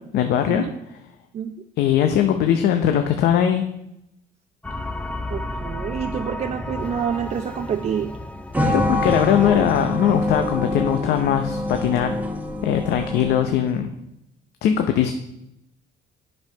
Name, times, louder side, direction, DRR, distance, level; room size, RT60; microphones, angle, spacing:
voice 1, 0.1-0.6 1.8-3.6 8.7-12.2 12.6-13.9 14.6-15.1, left 9 dB, 75° left, 7 dB, 0.7 m, -20 dB
sound 1, 4.6-12.7, left 1 dB, 5° left, 0.5 m, -34 dB
voice 2, 5.3-8.1, right 8 dB, 40° right, 7 dB, 0.5 m, -27 dB
sound 2, 8.5-13.7, left 1 dB, 10° right, 1.0 m, -25 dB
7.8 x 5.5 x 5.6 m, 0.83 s
cardioid pair, 110°, 17 cm